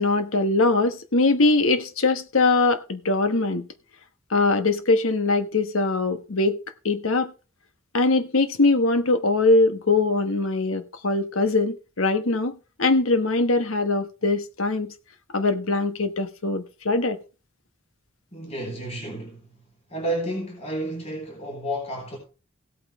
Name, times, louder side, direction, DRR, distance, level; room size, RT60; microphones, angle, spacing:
voice 1, 0.0-3.7 4.3-6.6 6.8-7.3 7.9-14.9 15.3-17.2, left 3 dB, 80° left, 1.2 m, -22 dB
voice 2, 18.3-19.6 19.9-22.2, right 1 dB, 30° left, 3.8 m, -31 dB
16.5 x 8.7 x 3.1 m
head